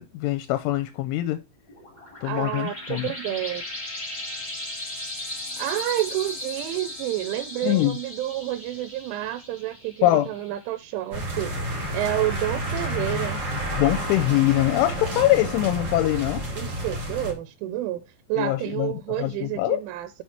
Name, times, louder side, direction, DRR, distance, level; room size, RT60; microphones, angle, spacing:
voice 1, 0.0-1.4 2.2-3.1 7.6-8.0 10.0-10.3 13.8-16.4 18.4-18.9 19.2-19.8, left 15 dB, 85° left, 2.9 m, -23 dB
sound 1, 1.7-10.9, left 1 dB, 20° left, 1.4 m, -37 dB
voice 2, 2.2-3.6 5.6-13.4 16.6-20.2, right 14 dB, 85° right, 3.0 m, -29 dB
sound 2, 11.1-17.3, right 1 dB, 40° right, 1.7 m, -30 dB
6.2 x 5.9 x 4.3 m
omnidirectional pair, 5.8 m